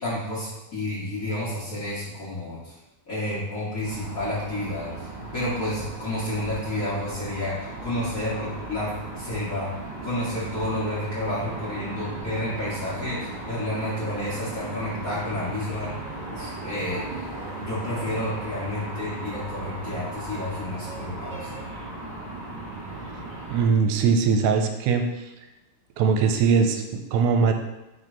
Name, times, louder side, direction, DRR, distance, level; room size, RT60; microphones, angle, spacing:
voice 1, 0.0-2.7 3.1-5.1 5.3-8.9 9.1-9.7 10.0-15.9 16.3-17.0 17.6-21.5, left 1 dB, 50° left, -10 dB, 1.0 m, -30 dB
sound 1, 3.8-23.7, right 2 dB, 50° right, 1.3 m, -36 dB
voice 2, 23.5-25.3 26.0-27.5, right 5 dB, 85° right, 5 dB, 2.7 m, -21 dB
6.0 x 5.4 x 4.0 m, 1.0 s
omnidirectional pair, 4.9 m